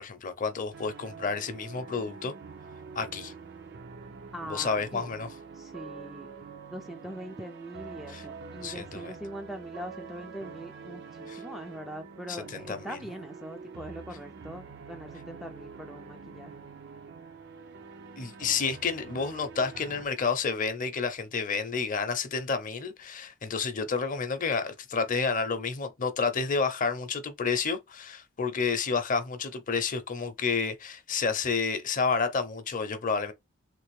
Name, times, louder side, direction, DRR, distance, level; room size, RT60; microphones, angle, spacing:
voice 1, 0.0-2.3 2.9-3.3 4.5-5.3 8.1-8.2 8.6-9.1 11.3-11.4 12.3-13.0 18.2-33.3, left 5 dB, 40° left, 0.6 m, -30 dB
sound 1, 0.7-20.1, right 5 dB, 55° right, 0.5 m, -46 dB
voice 2, 4.3-5.1 5.5-6.3 6.7-16.6, equal, ahead, 0.3 m, -42 dB
3.3 x 2.5 x 3.1 m
head